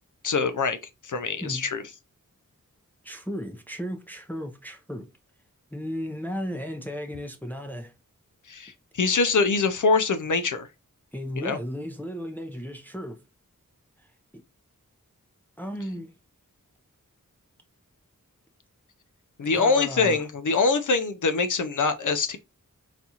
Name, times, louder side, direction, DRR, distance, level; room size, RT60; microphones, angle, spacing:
voice 1, 0.2-0.8 1.0-1.8 8.5-10.7 11.4-11.6 19.4-22.4, left 4 dB, 65° left, 0.4 m, -24 dB
voice 2, 3.0-5.1 5.7-7.9 11.1-13.2 14.0-14.1 15.6-16.1 19.5-20.3, equal, 5° left, 0.5 m, -35 dB
4.1 x 2.3 x 2.7 m
wide cardioid pair, 55°, 33 cm